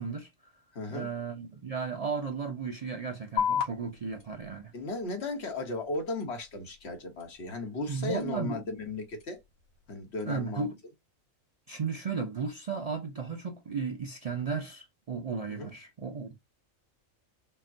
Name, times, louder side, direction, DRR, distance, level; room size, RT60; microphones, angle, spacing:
voice 1, 0.0-0.5 0.9-4.7 7.9-8.6 10.2-10.8 11.7-16.3, right 5 dB, 60° right, 0.4 m, -35 dB
voice 2, 0.7-1.1 4.7-9.4 9.9-10.7 15.5-15.7, left 3 dB, 55° left, 1.4 m, -36 dB
sound 1, 3.4-10.4, left 8 dB, 85° left, 1.7 m, -38 dB
5.6 x 2.1 x 2.5 m
omnidirectional pair, 1.4 m